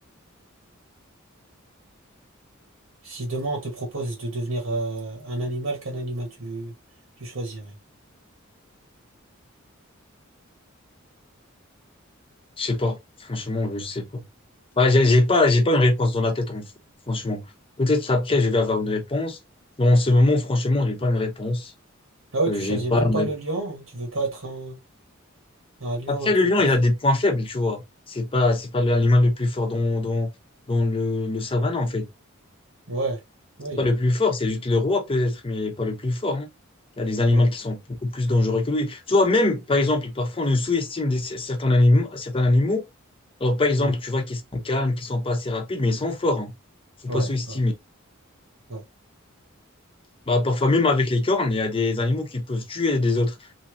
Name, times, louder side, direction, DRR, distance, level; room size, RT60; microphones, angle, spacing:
voice 1, 3.0-6.7 7.2-7.7 22.3-24.8 25.8-26.3 26.6-26.7 32.9-33.2 33.6-33.8 37.3-37.5 43.8-43.9 47.1-47.6 48.7-48.8, right 2 dB, 80° right, 1.3 m, -29 dB
voice 2, 12.6-14.2 14.8-16.7 17.1-17.4 17.8-19.4 19.8-21.7 22.5-23.3 26.1-27.8 28.1-30.3 30.7-32.1 33.8-36.5 37.0-42.9 43.4-46.5 47.0-47.7 50.3-53.3, left 2 dB, 25° left, 0.8 m, -22 dB
3.2 x 2.8 x 3.0 m
head